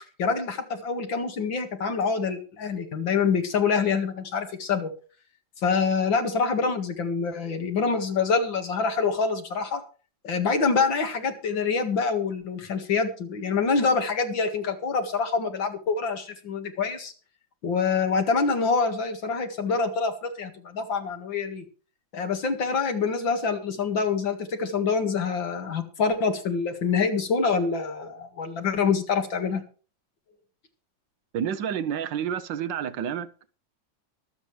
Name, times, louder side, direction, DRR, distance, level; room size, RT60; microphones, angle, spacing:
voice 1, 0.2-4.9 5.6-9.8 10.2-17.1 17.6-21.6 22.1-29.6, left 5 dB, 75° left, 6 dB, 2.7 m, -26 dB
voice 2, 31.3-33.3, right 8 dB, 75° right, 13 dB, 1.5 m, -29 dB
23.0 x 7.7 x 3.3 m, 0.38 s
omnidirectional pair, 2.1 m